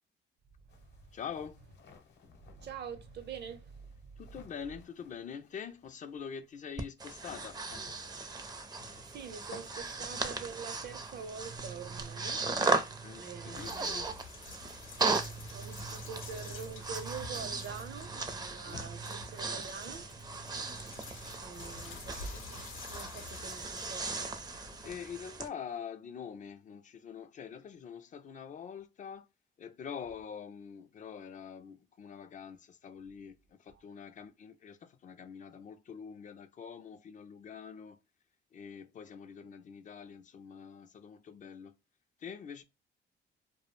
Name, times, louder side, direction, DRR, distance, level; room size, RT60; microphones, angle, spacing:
sound 1, 0.7-19.9, left 4 dB, 60° left, 0.8 m, -58 dB
voice 1, 1.1-1.6 4.2-7.6 13.0-14.1 24.8-29.3 29.6-38.0 38.5-41.7 42.2-42.6, left 7 dB, 40° left, 0.4 m, -45 dB
voice 2, 2.5-4.1 9.0-13.7 15.0-24.4, right 6 dB, 60° right, 0.7 m, -45 dB
Breathing, 6.8-25.5, right 3 dB, 20° right, 0.4 m, -37 dB
sound 2, 13.5-24.9, left 4 dB, 85° left, 0.6 m, -49 dB
2.3 x 2.1 x 3.0 m
cardioid pair, 90°, 20 cm